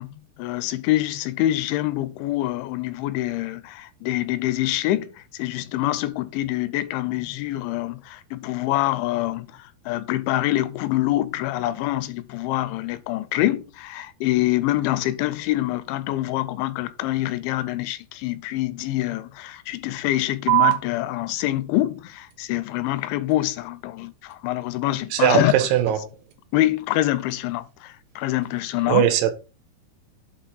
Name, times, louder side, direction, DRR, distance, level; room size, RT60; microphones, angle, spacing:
voice 1, 0.0-25.5 26.5-29.0, left 15 dB, 85° left, 2.8 m, -25 dB
sound 1, 20.5-27.5, right 24 dB, 70° right, 2.4 m, -30 dB
voice 2, 25.1-26.1 28.8-29.3, right 11 dB, 90° right, 3.1 m, -20 dB
8.1 x 3.0 x 5.6 m
omnidirectional pair, 5.4 m